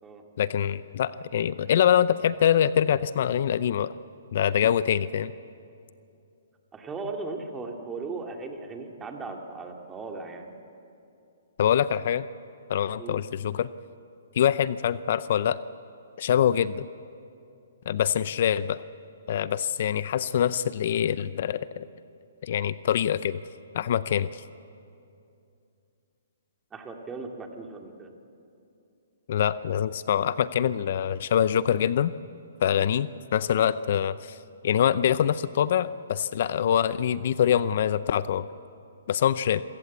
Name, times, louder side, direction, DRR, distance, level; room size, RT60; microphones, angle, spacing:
voice 1, 0.4-3.9 4.3-5.3 11.6-12.3 12.7-13.7 14.4-15.6 16.2-16.9 17.9-18.8 19.3-21.9 22.4-23.4 23.7-24.4 29.3-32.1 32.6-34.4 34.6-38.5 39.1-39.6, left 9 dB, 55° left, 16 dB, 0.5 m, -24 dB
voice 2, 6.7-10.5 13.0-13.2 26.7-28.1, right 3 dB, 15° right, 3 dB, 2.3 m, -37 dB
27.0 x 15.5 x 8.3 m, 2.6 s
hypercardioid pair, 145°, 0 cm